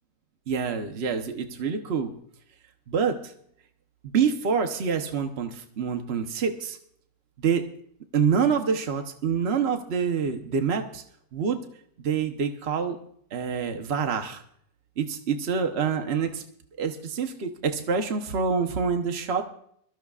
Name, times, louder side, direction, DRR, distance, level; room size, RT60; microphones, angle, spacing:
voice 1, 0.5-2.1 2.9-3.3 4.0-6.8 7.4-7.6 8.1-11.0 11.3-11.6 12.0-13.0 13.3-14.4 15.0-16.4 16.8-19.4, right 6 dB, 55° right, 6 dB, 0.7 m, -26 dB
22.5 x 14.0 x 2.4 m, 0.66 s
omnidirectional pair, 2.4 m